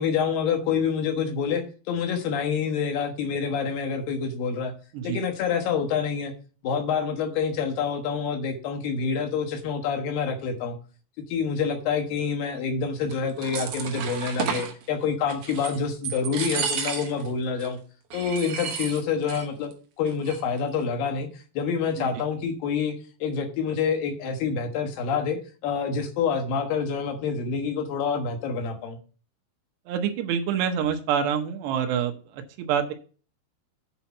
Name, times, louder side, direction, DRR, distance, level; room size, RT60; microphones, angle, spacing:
voice 1, 0.0-4.7 5.0-6.3 6.6-10.8 11.3-17.8 18.1-21.3 21.5-22.9 23.2-29.0, left 6 dB, 65° left, 5 dB, 2.8 m, -27 dB
sound 1, 13.1-14.7 15.3-15.8 16.0-17.3 17.6-17.7 18.1-19.5 19.7-19.8 20.1-20.6, right 7 dB, 65° right, 2.1 m, -32 dB
voice 2, 29.9-32.1 32.6-32.9, right 8 dB, 85° right, 5 dB, 3.1 m, -26 dB
8.1 x 4.4 x 7.0 m, 0.38 s
omnidirectional pair, 4.8 m